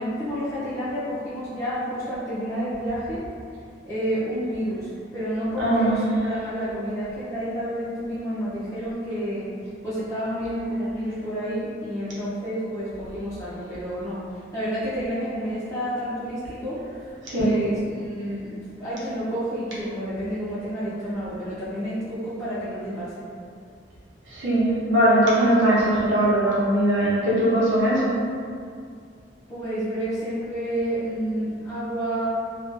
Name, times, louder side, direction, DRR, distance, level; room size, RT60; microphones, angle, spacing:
voice 1, 0.0-3.2 3.8-9.5 9.8-14.2 14.5-16.8 17.3-23.2 29.5-32.3, equal, 15° left, -11 dB, 0.5 m, -29 dB
voice 2, 5.6-5.9 17.2-17.5 24.3-28.1, right 1 dB, 75° right, -8 dB, 0.8 m, -20 dB
2.4 x 2.3 x 2.4 m, 2.3 s
head